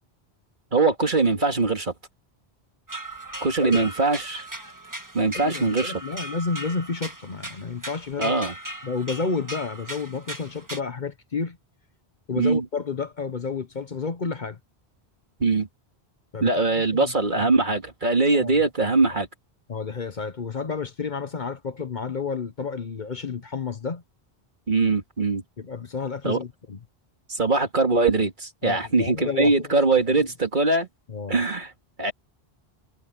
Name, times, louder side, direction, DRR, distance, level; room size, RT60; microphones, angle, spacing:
voice 1, 0.7-1.9 3.4-4.5 5.1-5.9 8.2-8.5 12.4-12.6 15.4-15.7 16.4-19.3 24.7-25.4 26.2-26.4 27.3-30.9 31.3-31.7 32.0-32.1, right 3 dB, 50° right, 2.4 m, -22 dB
sound 1, 2.9-10.8, right 1 dB, 20° right, 1.6 m, -38 dB
voice 2, 5.3-8.3 8.8-11.6 12.3-14.6 16.3-17.1 18.3-18.6 19.0-19.2 19.7-24.0 25.6-26.8 28.6-29.8 30.1-30.3 31.1-31.4, left 5 dB, 50° left, 1.1 m, -31 dB
omnidirectional pair, 1.1 m